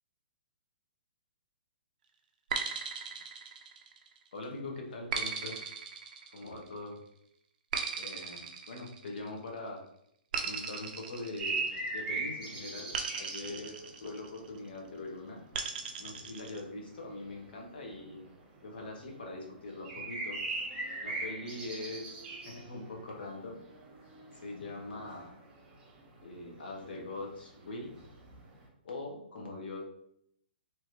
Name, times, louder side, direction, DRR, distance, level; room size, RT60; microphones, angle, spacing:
sound 1, 2.5-4.2 5.1-6.8 7.7-9.4 10.3-12.1 12.9-14.5 15.5-16.6, right 5 dB, 45° right, 0.4 m, -38 dB
voice 1, 4.3-5.6 6.3-6.9 7.9-9.8 10.4-15.4 16.0-18.2 18.6-20.4 21.0-22.2 22.4-23.6 24.4-25.4 26.2-28.0 28.8-29.8, left 2 dB, 60° left, 0 dB, 1.0 m, -42 dB
sound 2, 11.4-14.9 15.3-28.7, right 3 dB, 15° right, 0.9 m, -40 dB
3.0 x 2.4 x 3.0 m, 0.73 s
figure-of-eight pair, 130°, 6 cm